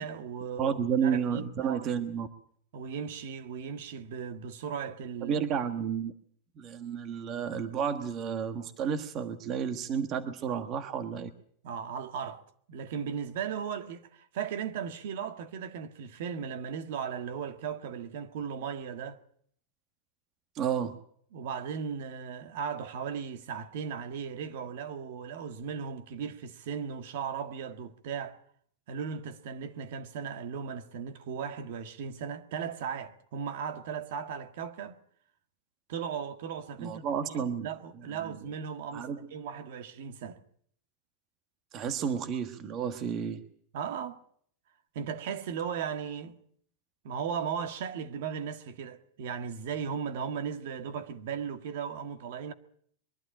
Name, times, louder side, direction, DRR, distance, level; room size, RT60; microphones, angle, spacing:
voice 1, 0.0-1.8 2.7-5.4 11.6-12.4 12.7-19.2 21.3-28.4 28.9-35.0 35.9-40.4 43.7-44.2 44.9-46.4 47.0-52.5, right 7 dB, 60° right, 1.6 m, -37 dB
voice 2, 0.6-2.3 5.2-6.1 6.6-11.3 20.5-21.0 36.8-37.7 38.1-38.4 38.9-39.3 41.7-43.4, right 7 dB, 30° right, 1.3 m, -31 dB
22.5 x 12.0 x 10.0 m
supercardioid pair, 165°, 0 cm